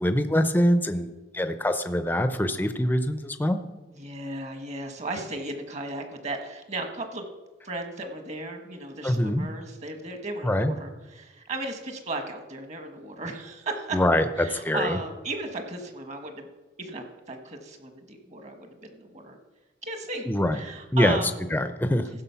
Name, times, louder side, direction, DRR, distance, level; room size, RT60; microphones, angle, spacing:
voice 1, 0.0-1.1 1.3-3.6 9.0-9.5 10.4-10.7 13.9-15.0 20.3-20.6 20.9-21.2 21.5-22.0, left 1 dB, 10° left, 9 dB, 0.6 m, -24 dB
voice 2, 3.9-7.2 7.6-14.0 14.4-16.5 16.8-19.4 19.8-20.3 20.5-21.3, right 2 dB, 40° right, 6 dB, 1.4 m, -35 dB
15.0 x 6.3 x 5.7 m, 1.2 s
head